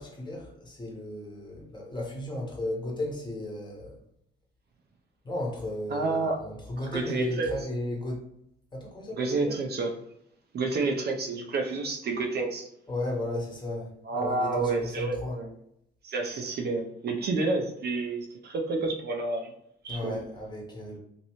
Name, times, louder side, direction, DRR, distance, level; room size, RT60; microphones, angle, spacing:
voice 1, 0.0-4.0 5.2-8.2 8.7-9.6 12.9-13.9 14.2-15.4 19.9-21.0, left 1 dB, 20° left, -1 dB, 1.1 m, -35 dB
voice 2, 5.9-6.4 6.9-7.6 9.2-9.9 10.5-12.7 14.1-15.5 16.0-19.5 19.8-20.2, right 3 dB, 55° right, 2 dB, 0.6 m, -29 dB
3.0 x 2.7 x 3.0 m, 0.75 s
cardioid pair, 90°, 20 cm